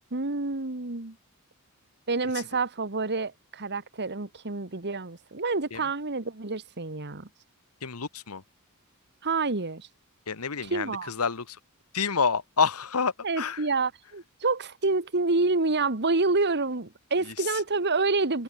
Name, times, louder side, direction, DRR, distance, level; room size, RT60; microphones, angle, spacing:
voice 1, 0.1-1.2 2.1-7.3 9.2-9.9 10.6-11.1 13.2-18.4, right 3 dB, 50° right, 1.8 m, -28 dB
voice 2, 7.8-8.4 10.3-11.6 11.9-13.6, left 5 dB, 80° left, 1.3 m, -28 dB
head